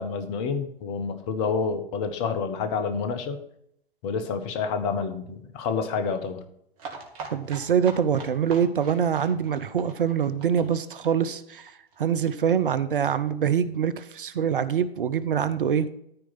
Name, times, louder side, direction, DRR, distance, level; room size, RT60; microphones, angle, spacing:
voice 1, 0.0-3.4 4.0-6.4, left 5 dB, 30° left, 9 dB, 1.2 m, -28 dB
sound 1, 6.8-12.3 12.6-12.7 12.9-13.0 13.3-13.4, right 4 dB, 35° right, 2.4 m, -42 dB
voice 2, 7.3-11.7 12.0-16.0, right 8 dB, 60° right, 14 dB, 0.8 m, -24 dB
13.5 x 4.7 x 6.0 m, 0.74 s
figure-of-eight pair, 115°, 30 cm